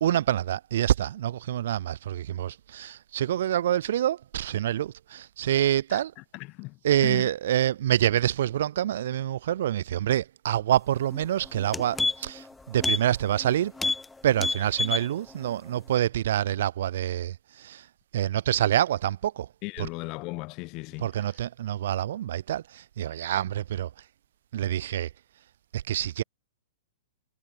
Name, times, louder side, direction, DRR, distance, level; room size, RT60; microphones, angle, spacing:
voice 1, 0.0-6.1 6.8-13.7 14.2-17.8 18.1-19.5 21.0-23.9 24.5-25.1 25.7-26.2, right 11 dB, 60° right, 0.3 m, -26 dB
voice 2, 5.9-7.3 19.6-21.3, left 26 dB, 40° left, 0.9 m, -37 dB
sound 1, 11.1-11.2 11.6-12.4 12.8-13.0 13.3-13.5 13.8-14.1 14.3-15.1 15.5-15.6, left 3 dB, 10° left, 0.5 m, -28 dB
figure-of-eight pair, 110°, 0 cm